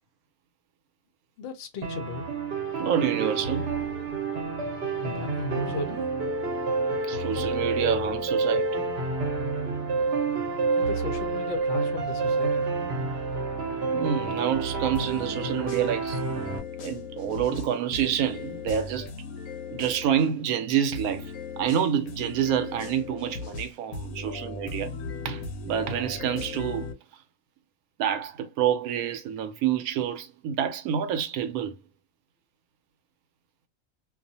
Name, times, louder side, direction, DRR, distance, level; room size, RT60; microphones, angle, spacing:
voice 1, 1.4-2.3 5.0-6.0 10.8-12.6, left 4 dB, 60° left, 0.6 m, -36 dB
sound 1, 1.8-16.6, right 4 dB, 55° right, 0.8 m, -29 dB
voice 2, 2.8-3.7 7.1-8.9 13.9-16.2 16.8-19.1 19.7-25.0 25.2-26.9 28.0-31.7, right 9 dB, 90° right, 1.1 m, -28 dB
sound 2, 14.9-20.3 20.9-26.9, left 4 dB, 80° left, 1.0 m, -38 dB
2.4 x 2.3 x 2.6 m
omnidirectional pair, 1.5 m